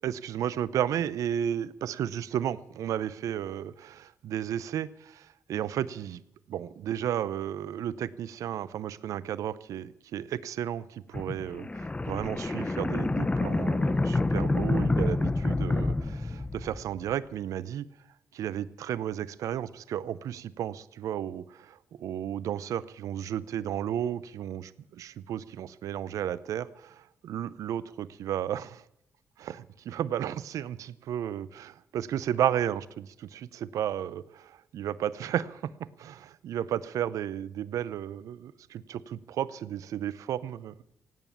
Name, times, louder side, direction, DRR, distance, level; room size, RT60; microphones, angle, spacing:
voice 1, 0.0-6.2 6.5-17.9 18.3-28.8 29.4-40.8, right 10 dB, 75° right, 19 dB, 0.6 m, -33 dB
sound 1, 11.1-17.0, left 2 dB, 20° left, 0.9 m, -28 dB
16.0 x 9.2 x 8.6 m, 0.79 s
supercardioid pair, 50°, 6 cm